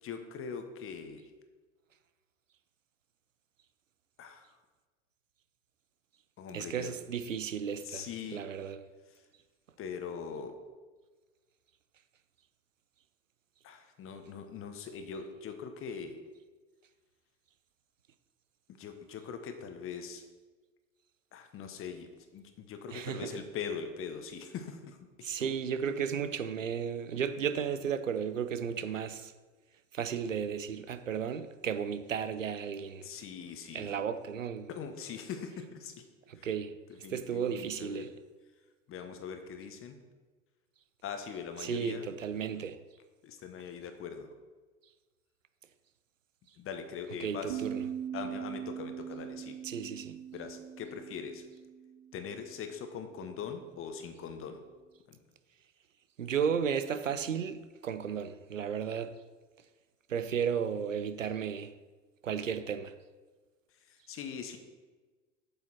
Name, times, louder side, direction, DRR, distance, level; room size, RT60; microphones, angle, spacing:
voice 1, 0.0-1.2 4.2-4.5 6.4-7.0 7.8-8.4 9.8-10.6 13.6-16.2 18.8-20.2 21.3-25.5 33.0-33.9 34.7-36.1 36.4-36.5 37.0-38.1 38.9-40.0 41.0-42.1 43.2-44.3 46.6-47.6 48.1-49.6 50.3-51.4 52.1-54.6 55.1-55.2 63.9-64.6, left 6 dB, 35° left, 1.2 m, -42 dB
voice 2, 6.5-8.0 8.3-8.9 22.9-23.3 25.2-29.3 29.9-33.1 33.7-34.7 36.3-36.8 37.1-38.1 41.6-42.8 47.2-47.8 49.6-50.2 56.2-59.2 60.1-61.7 62.2-62.9, right 7 dB, 85° right, 0.6 m, -34 dB
sound 1, 47.5-52.6, right 9 dB, 45° right, 0.8 m, -41 dB
7.9 x 6.9 x 4.3 m
figure-of-eight pair, 80°, 37 cm